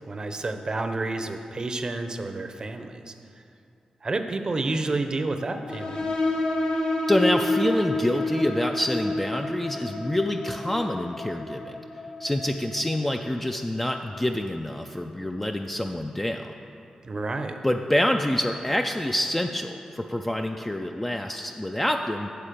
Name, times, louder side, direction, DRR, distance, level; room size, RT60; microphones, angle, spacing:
voice 1, 0.1-3.1 4.0-6.1 17.0-17.6, right 2 dB, 40° right, 7 dB, 0.6 m, -30 dB
sound 1, 5.7-13.0, left 1 dB, 65° left, 1.4 m, -29 dB
voice 2, 7.1-11.8 12.2-16.5 17.6-22.5, left 1 dB, 10° left, 4 dB, 0.3 m, -27 dB
8.5 x 7.1 x 5.1 m, 2.6 s
wide cardioid pair, 100°, 2 cm